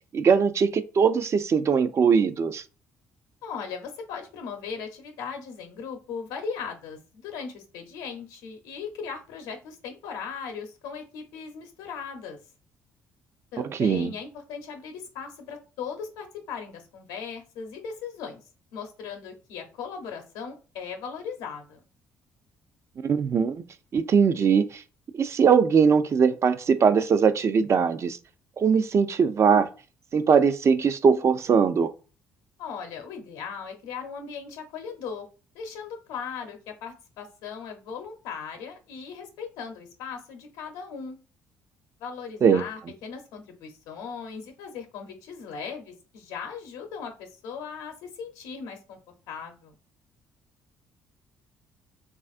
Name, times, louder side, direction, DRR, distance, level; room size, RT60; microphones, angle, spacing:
voice 1, 0.1-2.6 13.8-14.1 23.0-23.6 23.9-24.8 25.1-28.2 28.6-29.7 30.1-31.9 42.4-42.6, right 6 dB, 45° right, 0.4 m, -21 dB
voice 2, 3.4-12.4 13.5-18.4 18.7-21.8 32.6-35.3 35.5-41.2 42.0-49.0 49.3-49.7, left 6 dB, 85° left, 0.7 m, -38 dB
3.4 x 2.4 x 2.4 m
supercardioid pair, 65°, 7 cm